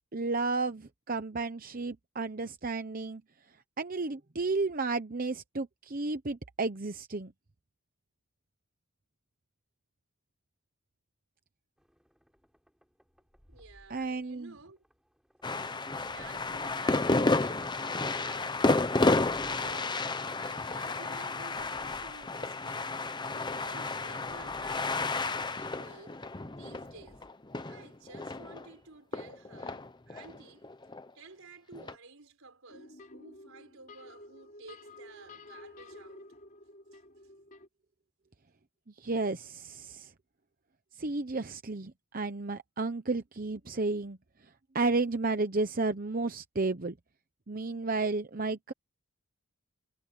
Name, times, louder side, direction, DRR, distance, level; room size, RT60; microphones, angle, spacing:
voice 1, 0.1-3.2 3.8-7.3 13.9-14.5 39.0-40.1 40.9-44.2 44.7-47.0 47.5-48.7, right 3 dB, 40° right, 0.9 m, -32 dB
sound 1, 11.8-27.3, equal, ahead, 8.0 m, -63 dB
voice 2, 13.5-14.8 16.0-20.1 20.3-22.9 23.3-26.2 26.5-27.3 27.6-30.7 31.1-36.3 36.9-37.0, right 3 dB, 75° right, 4.5 m, -53 dB
sound 2, 15.4-28.7 29.1-31.1 31.7-31.9, left 2 dB, 20° left, 0.8 m, -31 dB
sound 3, 32.7-37.7, left 2 dB, 40° left, 3.8 m, -51 dB
head